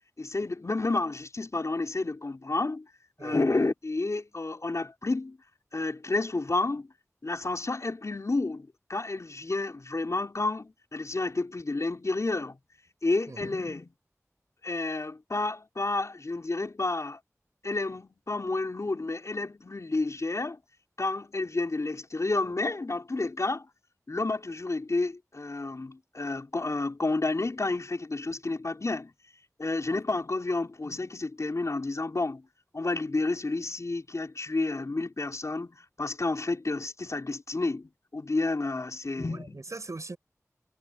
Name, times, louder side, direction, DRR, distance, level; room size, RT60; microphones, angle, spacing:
voice 1, 0.2-2.8 3.2-5.4 5.7-6.9 7.2-12.6 13.0-13.9 14.6-17.2 17.6-20.6 21.0-23.7 24.1-29.1 29.6-32.4 32.7-39.6, left 3 dB, 65° left, 4.6 m, -30 dB
voice 2, 3.2-3.5 13.3-13.6 39.0-40.2, right 3 dB, 70° right, 6.4 m, -41 dB
wide cardioid pair, 60°, 6 cm